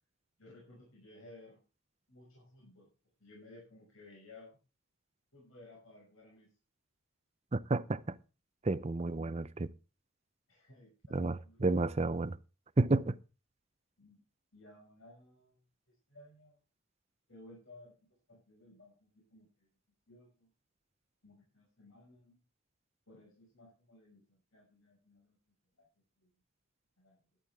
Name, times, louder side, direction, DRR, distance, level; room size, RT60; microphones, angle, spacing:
voice 1, 0.4-1.6 2.1-2.9 3.2-4.6 5.3-6.5 9.0-9.4 10.5-12.1 14.0-14.2 14.5-15.6 16.1-16.5 17.3-17.9 18.3-19.7 20.1-20.5 21.2-22.4 23.1-25.4 25.8-25.9 26.2-26.3 27.0-27.2, left 2 dB, 80° left, 6.0 m, -57 dB
voice 2, 7.5-8.2 8.6-9.7 11.1-12.4 12.8-13.2, right 2 dB, 30° right, 0.6 m, -31 dB
13.5 x 11.0 x 3.6 m
head